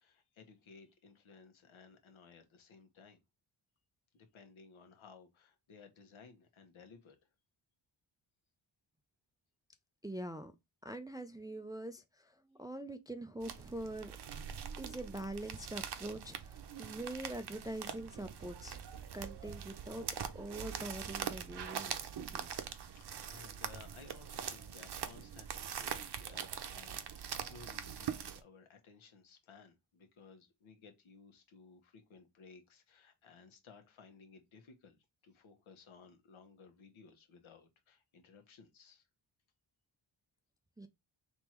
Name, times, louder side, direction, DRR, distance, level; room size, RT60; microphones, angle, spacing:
voice 1, 0.0-3.2 4.1-7.2 22.9-39.0, left 5 dB, 75° left, 1.3 m, -58 dB
voice 2, 10.0-10.5 10.8-14.1 14.8-18.8 19.1-20.1 20.3-22.7 40.8-40.9, right 1 dB, 10° right, 0.4 m, -44 dB
sound 1, 13.4-28.4, right 8 dB, 55° right, 0.8 m, -43 dB
3.5 x 3.0 x 4.4 m
cardioid pair, 80°, 48 cm